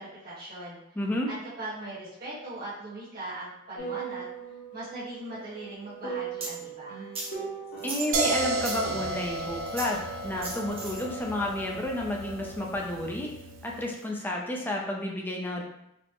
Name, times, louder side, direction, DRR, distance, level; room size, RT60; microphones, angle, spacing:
voice 1, 0.0-0.8 1.3-4.3 4.7-7.1, right 1 dB, 50° right, -10 dB, 1.3 m, -39 dB
voice 2, 1.0-1.3 7.8-13.3 13.6-15.6, left 1 dB, 10° left, -1 dB, 0.4 m, -31 dB
sound 1, 3.8-9.1, right 6 dB, 85° left, 1.1 m, -39 dB
sound 2, 6.4-6.5 7.1-7.3 7.8-8.8 9.7-10.0 10.4-11.0, right 2 dB, 30° right, 0.8 m, -36 dB
sound 3, 8.1-13.9, right 3 dB, 75° right, 0.4 m, -33 dB
4.2 x 2.1 x 2.9 m, 0.80 s
head